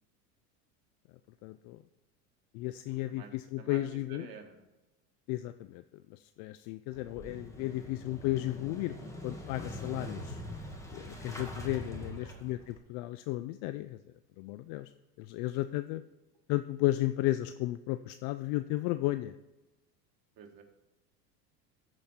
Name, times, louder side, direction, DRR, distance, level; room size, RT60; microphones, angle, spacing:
voice 1, 1.4-1.8 2.5-4.3 5.3-5.8 6.1-9.0 9.2-10.4 10.9-14.0 14.4-14.9 15.2-16.0 16.5-19.3, left 16 dB, 50° left, 12 dB, 0.5 m, -34 dB
voice 2, 2.8-4.7 9.0-9.2 11.9-12.5 20.4-20.6, right 5 dB, 45° right, 3 dB, 1.9 m, -52 dB
Motorcycle / Engine starting, 6.9-12.8, left 1 dB, 5° left, 1.9 m, -43 dB
13.5 x 5.2 x 4.2 m, 1.0 s
hypercardioid pair, 90°, 48 cm